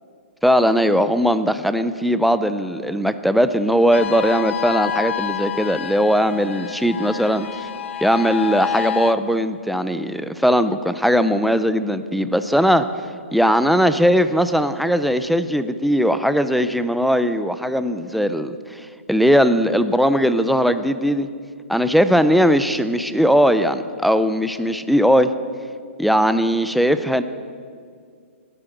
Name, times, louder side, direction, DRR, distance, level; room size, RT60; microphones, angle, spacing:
voice 1, 0.4-7.7 8.0-12.9 13.3-21.3 21.7-25.3 26.0-27.2, equal, ahead, 11 dB, 0.4 m, -19 dB
sound 1, 3.9-9.1, left 10 dB, 65° left, 0.8 m, -28 dB
14.5 x 10.0 x 7.8 m, 2.1 s
hypercardioid pair, 150°, 7 cm